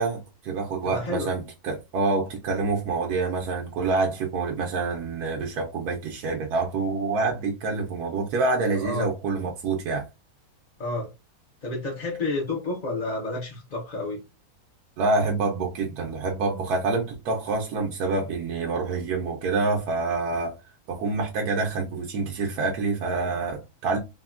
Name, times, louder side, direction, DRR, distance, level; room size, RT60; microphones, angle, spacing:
voice 1, 0.0-10.1 15.0-20.6 20.9-24.0, right 3 dB, 80° right, 1.2 m, -27 dB
voice 2, 0.8-1.3 8.8-9.1 10.8-11.1 11.6-14.2, left 2 dB, 45° left, 0.5 m, -30 dB
3.5 x 2.2 x 2.4 m
omnidirectional pair, 1.6 m